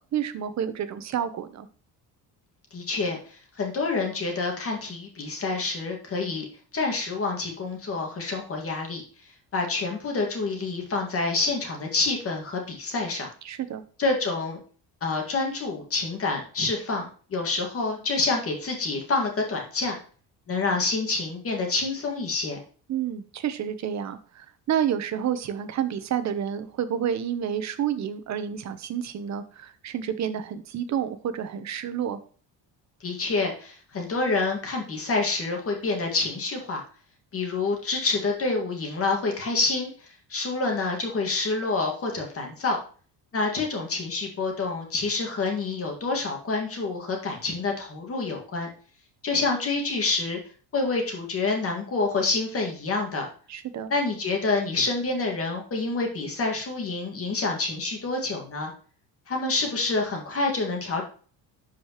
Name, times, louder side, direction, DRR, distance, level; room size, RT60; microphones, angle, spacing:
voice 1, 0.1-1.7 13.4-13.8 22.9-32.2 53.5-53.9, right 9 dB, 45° right, 10 dB, 0.9 m, -29 dB
voice 2, 2.7-3.2 3.6-6.4 6.7-9.0 9.5-13.3 14.0-14.6 15.0-20.0 20.5-22.6 33.0-36.8 37.3-39.9 40.3-42.8 43.3-48.7 49.2-50.4 50.7-53.2 53.9-58.7 59.3-61.0, left 3 dB, 35° left, 1 dB, 2.0 m, -27 dB
11.5 x 4.9 x 3.0 m, 0.41 s
cardioid pair, 140°, 40 cm